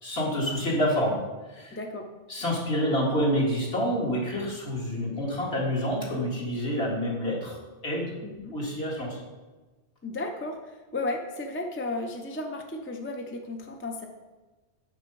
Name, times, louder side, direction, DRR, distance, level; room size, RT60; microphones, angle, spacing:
voice 1, 0.0-1.2 1.5-1.8 2.3-7.6 7.8-8.1 8.5-9.2, equal, 60° left, -4 dB, 2.3 m, -27 dB
voice 2, 1.7-2.1 8.2-8.5 10.0-14.1, left 2 dB, 15° left, 2 dB, 0.5 m, -34 dB
6.6 x 6.3 x 5.3 m, 1.2 s
omnidirectional pair, 1.2 m